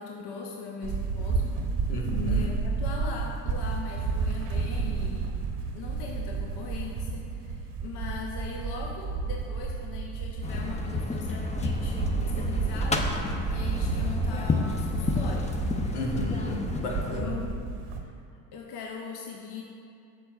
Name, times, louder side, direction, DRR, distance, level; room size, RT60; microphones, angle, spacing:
voice 1, 0.0-1.6 2.3-5.4 5.7-15.6 17.2-17.5 18.5-19.6, left 4 dB, 55° left, 0 dB, 0.8 m, -40 dB
sound 1, 0.8-18.0, right 4 dB, 60° right, 1.0 m, -31 dB
voice 2, 1.9-2.5 15.9-17.4, left 2 dB, 75° left, -2 dB, 1.2 m, -32 dB
sound 2, 10.4-17.2, left 3 dB, 15° left, 0.5 m, -31 dB
8.1 x 6.2 x 2.3 m, 2.6 s
hypercardioid pair, 60°, 47 cm